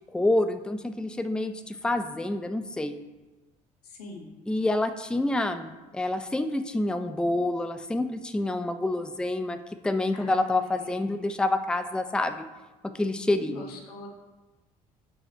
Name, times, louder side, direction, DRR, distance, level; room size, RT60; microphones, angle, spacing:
voice 1, 0.1-2.9 4.5-9.6 9.8-12.5 12.9-13.7, left 2 dB, 5° left, 9 dB, 0.5 m, -27 dB
voice 2, 3.8-4.3 10.1-11.3 13.4-14.1, left 3 dB, 85° left, 2 dB, 1.0 m, -44 dB
4.9 x 4.9 x 4.3 m, 1.1 s
hypercardioid pair, 60°, 19 cm